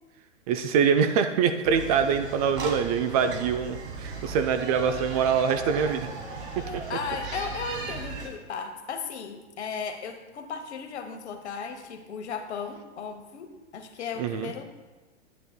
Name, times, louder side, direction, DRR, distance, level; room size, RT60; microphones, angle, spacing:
voice 1, 0.5-6.1 6.7-6.8 14.2-14.5, right 7 dB, 30° right, 8 dB, 0.4 m, -24 dB
sound 1, 1.6-8.3, right 3 dB, 60° right, 1.9 m, -37 dB
voice 2, 6.5-14.6, left 5 dB, 65° left, 7 dB, 1.1 m, -36 dB
10.0 x 9.0 x 2.2 m, 1.2 s
figure-of-eight pair, 105°, 37 cm